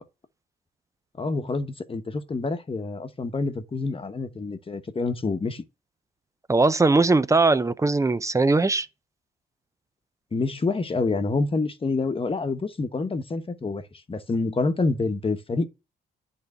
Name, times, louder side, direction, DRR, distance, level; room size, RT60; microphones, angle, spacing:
voice 1, 1.2-5.6 10.3-13.8 14.1-15.6, left 3 dB, 25° left, 1.2 m, -27 dB
voice 2, 6.5-8.9, right 3 dB, 15° right, 0.6 m, -20 dB
10.5 x 3.9 x 7.0 m
cardioid pair, 90°, 20 cm